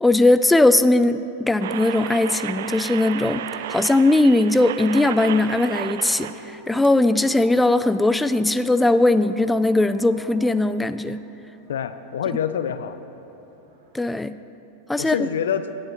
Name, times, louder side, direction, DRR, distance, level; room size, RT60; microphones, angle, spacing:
voice 1, 0.0-11.2 13.9-14.4 14.9-15.3, left 2 dB, 5° left, 12 dB, 0.3 m, -19 dB
sound 1, 1.6-6.6 6.8-6.9, right 10 dB, 70° right, 0.4 m, -32 dB
sound 2, 4.8-13.9, right 2 dB, 85° right, 2.6 m, -45 dB
voice 2, 11.7-13.0 15.0-15.7, left 8 dB, 80° left, 11 dB, 0.5 m, -26 dB
16.5 x 9.4 x 3.0 m, 2.8 s
hypercardioid pair, 105°, 0 cm